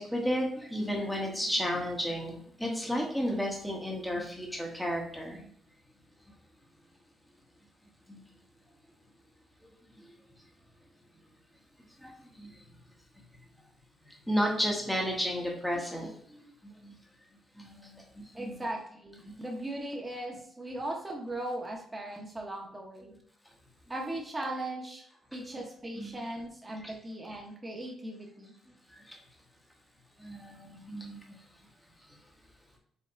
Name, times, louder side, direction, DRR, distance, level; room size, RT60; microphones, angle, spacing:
voice 1, 0.0-2.3 2.6-5.4 8.1-8.2 12.0-12.1 12.4-12.5 14.3-16.1 16.8-16.9 17.6-17.7 18.4-18.6 26.0-26.2 26.8-26.9 30.2-31.2, equal, ahead, -1 dB, 1.1 m, -32 dB
voice 2, 18.3-23.1 23.9-25.0 25.3-28.5, right 1 dB, 20° right, 1 dB, 1.2 m, -38 dB
5.3 x 3.4 x 2.8 m, 0.65 s
cardioid pair, 90°, 0 cm